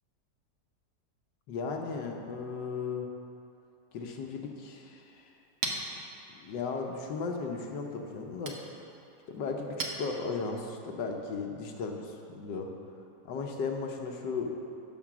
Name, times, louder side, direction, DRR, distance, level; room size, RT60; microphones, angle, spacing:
voice 1, 1.5-3.1 3.9-5.3 6.4-8.5 9.3-12.7 13.2-14.5, left 4 dB, 85° left, 2 dB, 1.6 m, -36 dB
Chink clink, 5.0-10.7, right 3 dB, 55° right, 1.1 m, -42 dB
11.5 x 4.6 x 6.0 m, 2.7 s
omnidirectional pair, 1.9 m